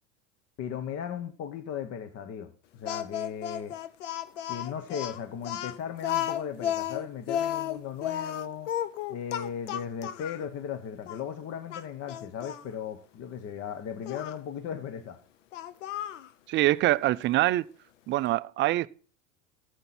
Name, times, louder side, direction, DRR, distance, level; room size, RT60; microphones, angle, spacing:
voice 1, 0.6-2.5 2.8-3.8 4.5-8.7 9.1-15.2, left 8 dB, 40° left, 1.0 m, -37 dB
Speech, 2.9-10.4 11.1-11.2 11.7-12.6 14.1-14.4 15.5-16.3, left 11 dB, 80° left, 0.8 m, -33 dB
voice 2, 16.5-17.7 18.1-18.9, right 16 dB, 35° right, 0.4 m, -24 dB
12.0 x 8.1 x 4.2 m
hypercardioid pair, 90°, 36 cm